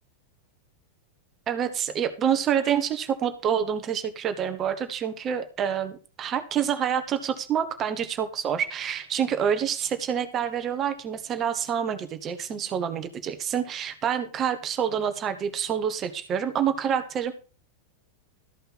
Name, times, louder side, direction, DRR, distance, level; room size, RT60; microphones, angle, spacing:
voice 1, 1.5-17.3, right 8 dB, 30° right, 9 dB, 1.5 m, -27 dB
14.0 x 5.5 x 5.8 m, 0.35 s
figure-of-eight pair, 90°, 0 cm